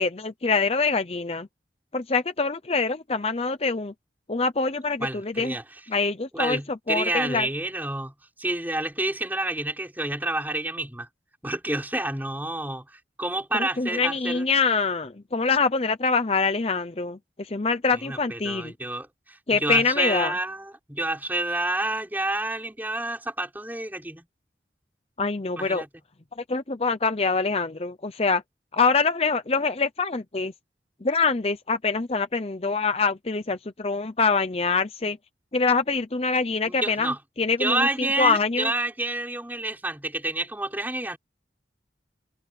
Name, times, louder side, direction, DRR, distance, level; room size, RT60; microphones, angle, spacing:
voice 1, 0.0-1.5 1.9-3.9 4.3-5.5 5.9-7.5 13.5-18.7 19.5-20.3 25.2-25.8 26.5-28.4 28.7-30.5 31.0-35.2 35.5-38.7, left 4 dB, 35° left, 0.7 m, -25 dB
voice 2, 5.0-5.6 6.3-8.1 8.4-11.1 11.4-12.9 13.2-14.4 18.0-24.3 25.6-25.9 36.7-37.2 37.6-41.2, right 2 dB, 10° right, 5.2 m, -29 dB
head